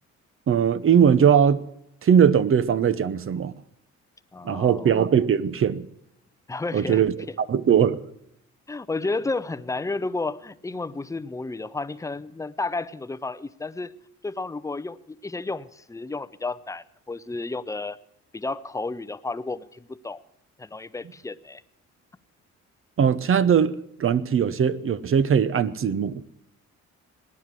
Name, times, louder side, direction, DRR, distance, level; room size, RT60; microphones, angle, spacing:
voice 1, 0.5-1.6 2.0-3.5 4.4-5.9 6.7-8.0 23.0-26.2, right 8 dB, 45° right, 0.8 m, -20 dB
voice 2, 4.3-4.9 6.5-7.1 8.7-13.9 14.2-18.0 18.3-20.2 20.6-21.6, left 3 dB, 10° left, 0.6 m, -32 dB
19.0 x 9.8 x 7.5 m
cardioid pair, 90°, 30 cm